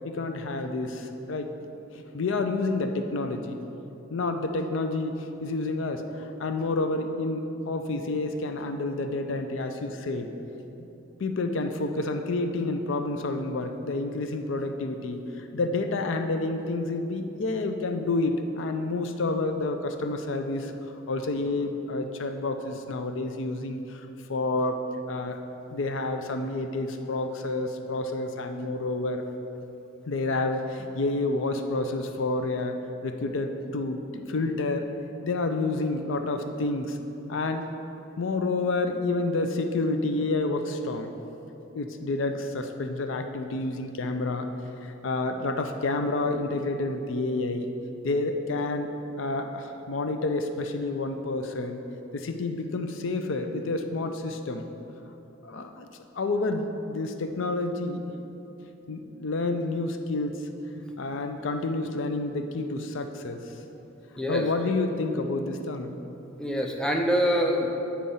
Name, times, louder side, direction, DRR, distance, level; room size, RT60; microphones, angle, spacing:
voice 1, 0.0-1.5 2.1-3.6 4.1-5.1 5.4-6.0 6.4-10.3 11.2-15.2 15.5-20.7 21.1-24.0 24.3-24.8 25.1-25.4 25.7-29.2 30.1-32.7 33.0-34.9 35.2-37.0 37.3-37.7 38.2-41.1 41.7-44.5 45.0-47.7 48.0-51.8 52.1-54.6 55.4-55.9 56.1-58.1 58.9-60.4 61.0-63.4 64.3-66.0, left 2 dB, 70° left, 7 dB, 0.5 m, -29 dB
voice 2, 66.4-67.7, equal, 5° left, 1 dB, 0.5 m, -25 dB
8.6 x 4.3 x 5.5 m, 3.0 s
head